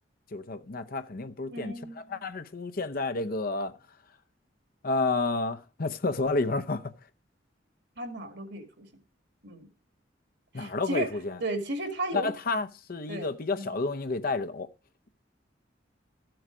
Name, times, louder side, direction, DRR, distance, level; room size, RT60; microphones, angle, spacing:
voice 1, 0.3-3.7 4.8-6.9 10.5-11.4 12.1-14.7, left 3 dB, 50° left, 0.7 m, -30 dB
voice 2, 1.5-2.0 8.0-8.9 9.4-9.7 10.6-11.1 11.4-12.3 13.1-13.3 13.6-13.7, right 2 dB, 65° right, 1.9 m, -34 dB
13.5 x 7.8 x 4.9 m
head